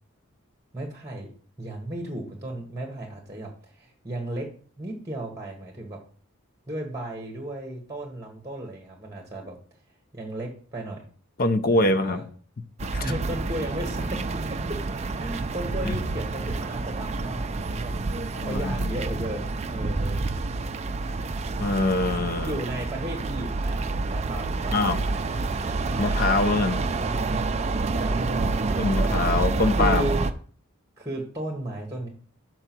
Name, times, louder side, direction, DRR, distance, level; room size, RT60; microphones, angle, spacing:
voice 1, 0.7-1.3 1.6-4.5 4.8-6.0 6.7-9.6 10.1-11.0 11.7-12.2 13.0-14.8 15.1-20.2 22.4-25.3 26.6-26.8 27.9-29.2 29.8-30.2 31.0-32.1, right 1 dB, 15° right, 1 dB, 1.3 m, -35 dB
voice 2, 11.4-12.2 12.9-13.0 15.8-16.0 18.3-19.0 21.6-22.5 24.7-25.0 26.0-26.8 28.8-30.1, left 2 dB, 40° left, 10 dB, 0.5 m, -24 dB
sound 1, 12.8-30.3, right 3 dB, 30° right, 0.4 m, -28 dB
6.6 x 4.6 x 6.0 m, 0.43 s
head